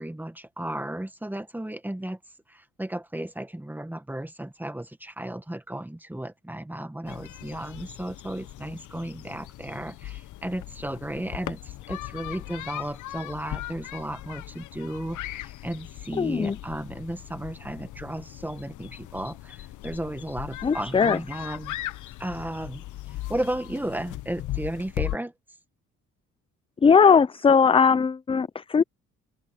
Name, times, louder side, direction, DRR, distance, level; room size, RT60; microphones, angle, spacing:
voice 1, 0.0-2.2 2.5-21.8 22.2-25.3, right 1 dB, 5° right, 1.6 m, -34 dB
sound 1, 7.0-25.2, left 15 dB, 75° left, 0.9 m, -38 dB
voice 2, 16.2-16.5 20.6-21.2 26.8-28.8, left 6 dB, 20° left, 0.4 m, -19 dB
cardioid pair, 90°, 30 cm